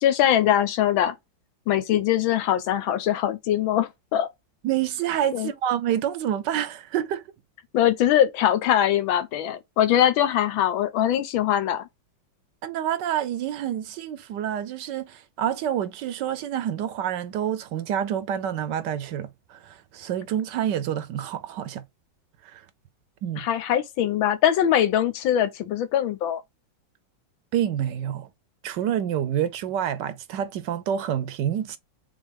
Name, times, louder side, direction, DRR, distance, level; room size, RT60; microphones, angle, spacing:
voice 1, 0.0-1.1 1.7-4.3 5.3-5.5 7.7-11.8 23.4-26.4, left 11 dB, 90° left, 1.5 m, -22 dB
voice 2, 4.6-7.2 12.6-21.8 22.4-22.6 23.2-23.4 27.5-28.3 28.6-31.8, right 10 dB, 70° right, 1.1 m, -28 dB
3.7 x 3.7 x 3.3 m
omnidirectional pair, 2.1 m